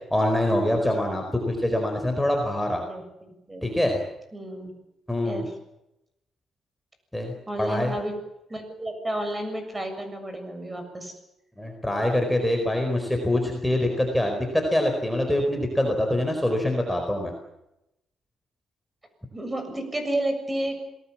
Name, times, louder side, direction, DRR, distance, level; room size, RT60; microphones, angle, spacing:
voice 1, 0.1-2.8 3.6-4.0 5.1-5.4 7.1-7.9 11.6-17.3, left 1 dB, 5° left, 2 dB, 4.6 m, -24 dB
voice 2, 2.9-3.6 4.3-4.7 5.2-5.6 7.5-8.1 8.5-11.1 19.3-20.7, right 1 dB, 20° right, 7 dB, 7.1 m, -31 dB
27.0 x 19.5 x 7.4 m, 0.87 s
cardioid pair, 90°, 0 cm